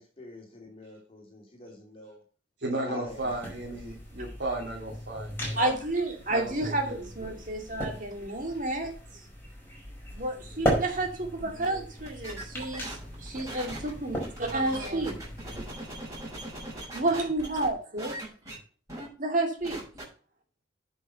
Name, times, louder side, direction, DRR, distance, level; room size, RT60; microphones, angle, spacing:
voice 1, 0.0-2.2 2.9-3.3 3.6-3.8, left 1 dB, 30° left, 0 dB, 3.1 m, -46 dB
voice 2, 2.6-5.7 6.3-7.0, right 1 dB, 60° right, -4 dB, 3.1 m, -34 dB
sound 1, 3.1-15.7, equal, 10° left, 5.1 m, -37 dB
voice 3, 5.5-9.2 10.1-15.2 16.9-18.1 19.2-19.8, right 2 dB, 45° right, 3 dB, 2.5 m, -30 dB
sound 2, 12.0-17.7 18.0-18.5 18.9-19.1 19.4-20.0, right 1 dB, 20° right, 6.3 m, -40 dB
9.7 x 6.3 x 5.7 m, 0.38 s
head